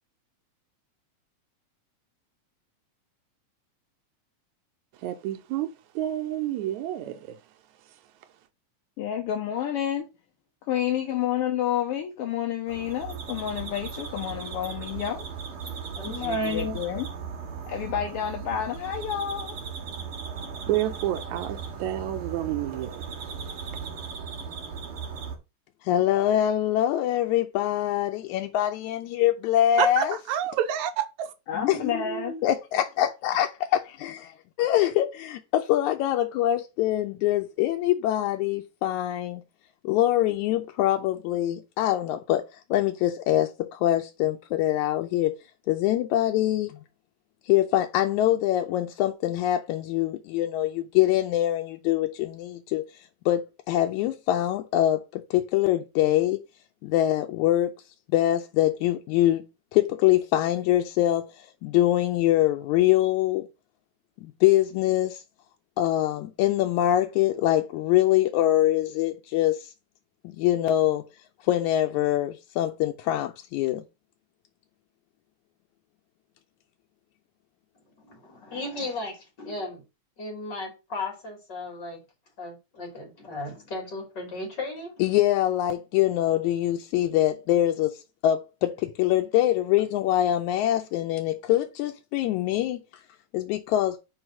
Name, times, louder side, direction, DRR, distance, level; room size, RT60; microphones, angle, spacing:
voice 1, 5.0-7.4 20.7-23.0 29.8-31.3, right 12 dB, 80° right, 2.1 m, -29 dB
voice 2, 9.0-10.1 10.7-15.3 16.2-17.1 17.7-19.6 31.5-32.3, left 10 dB, 65° left, 1.6 m, -29 dB
sound 1, 12.7-25.4, right 6 dB, 50° right, 2.6 m, -37 dB
voice 3, 16.0-16.8 31.5-32.4 78.0-79.8 80.2-82.0 82.4-85.1, left 2 dB, 35° left, 3.3 m, -34 dB
voice 4, 25.8-30.2 31.7-31.8 32.4-34.2 34.6-39.4 39.8-45.4 45.7-46.8 47.5-52.9 53.3-56.4 56.8-57.7 58.1-59.4 59.7-63.5 64.2-65.2 65.8-69.7 70.2-71.0 71.4-73.8 85.0-88.0 88.2-92.8 93.3-94.0, left 13 dB, 85° left, 2.0 m, -24 dB
5.4 x 4.8 x 6.1 m
omnidirectional pair, 3.4 m